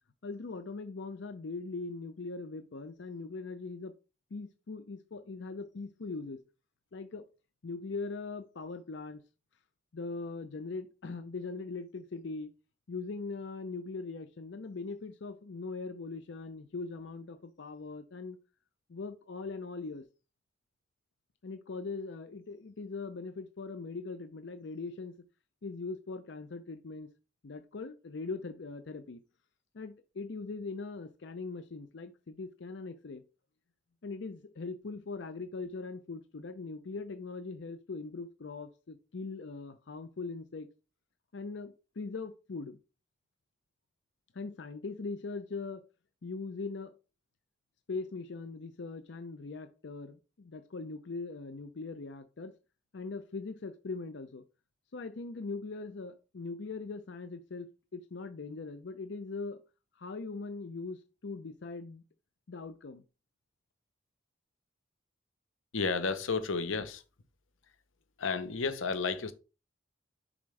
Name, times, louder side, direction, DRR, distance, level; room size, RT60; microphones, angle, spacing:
voice 1, 0.2-3.9 4.3-6.4 6.9-7.2 7.6-9.2 9.9-12.5 12.9-18.4 18.9-20.0 21.4-25.1 25.6-27.1 27.4-29.2 29.7-33.2 34.0-40.7 41.3-42.8 44.3-45.8 46.2-46.9 47.9-52.5 52.9-54.4 54.9-59.6 60.0-62.0 62.5-63.0, left 3 dB, 65° left, 0.5 m, -41 dB
voice 2, 65.7-67.0 68.2-69.3, left 4 dB, 90° left, 0.8 m, -32 dB
7.0 x 5.1 x 3.3 m
head